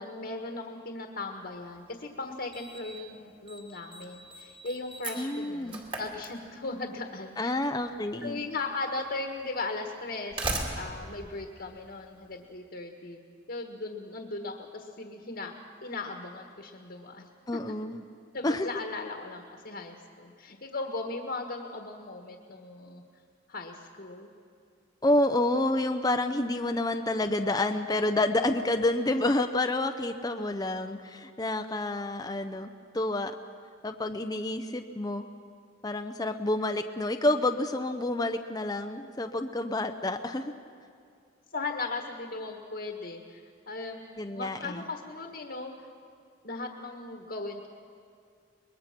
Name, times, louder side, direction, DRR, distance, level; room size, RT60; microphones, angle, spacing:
voice 1, 0.0-7.5 8.2-10.4 10.7-13.2 13.5-17.3 18.3-23.0 23.5-24.3 41.5-44.0 44.3-45.9 46.4-47.7, left 3 dB, 55° left, 3 dB, 1.5 m, -37 dB
Slam, 1.7-1.8 2.5-3.0 3.3-3.6 3.9-6.8 8.0-8.1 8.9-9.0 10.0-12.3, right 2 dB, 30° right, 2.4 m, -37 dB
voice 2, 5.1-5.8 7.4-8.4 17.5-18.0 18.4-18.7 25.0-33.3 33.8-35.3 35.8-40.5 44.2-44.8, left 2 dB, 20° left, 6 dB, 0.6 m, -29 dB
23.5 x 21.0 x 6.0 m, 2.3 s
head